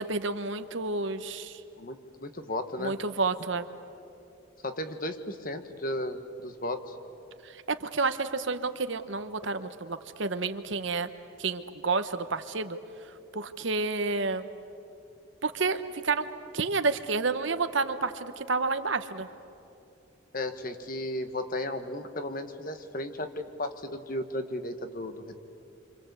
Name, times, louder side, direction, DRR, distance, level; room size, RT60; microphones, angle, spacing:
voice 1, 0.0-1.6 2.8-3.7 7.4-11.1 11.4-14.5 15.4-16.3 16.5-19.3, right 3 dB, 65° right, 10 dB, 1.1 m, -30 dB
voice 2, 1.8-2.9 4.6-7.0 20.3-25.4, left 1 dB, 40° left, 8 dB, 1.4 m, -35 dB
28.0 x 26.0 x 8.2 m, 2.9 s
head